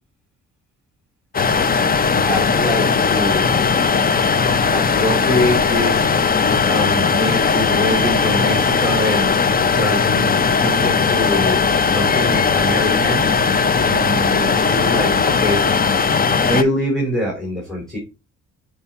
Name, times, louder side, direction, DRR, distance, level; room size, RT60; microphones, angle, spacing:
sound 1, 1.3-16.6, left 5 dB, 30° left, 0.7 m, -18 dB
voice 1, 2.2-3.5 4.7-6.1 6.6-9.5 9.7-10.3 10.6-13.5 13.8-15.6 16.4-18.0, left 1 dB, ahead, -1 dB, 3.6 m, -24 dB
7.2 x 4.6 x 4.4 m, 0.29 s
cardioid pair, 90°, 30 cm